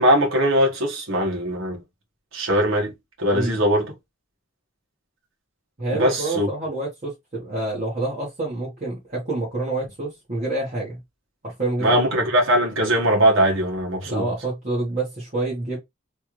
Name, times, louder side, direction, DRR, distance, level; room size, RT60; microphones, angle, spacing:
voice 1, 0.0-1.8 2.3-2.9 3.2-3.9 5.9-6.5 11.8-14.2, equal, 65° right, 1.2 m, -20 dB
voice 2, 3.3-3.6 5.8-11.0 11.4-12.1 14.0-15.8, right 2 dB, 35° right, 1.2 m, -27 dB
3.4 x 2.4 x 2.9 m
head